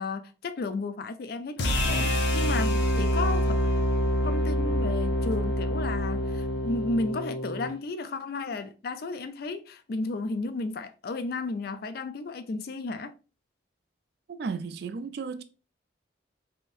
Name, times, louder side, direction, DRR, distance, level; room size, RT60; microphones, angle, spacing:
voice 1, 0.0-3.6 4.2-13.1, left 3 dB, 50° left, 0.3 m, -33 dB
sound 1, 1.6-7.7, equal, 65° left, 0.7 m, -26 dB
voice 2, 14.3-15.4, right 5 dB, 55° right, 0.3 m, -34 dB
3.5 x 2.6 x 2.5 m
head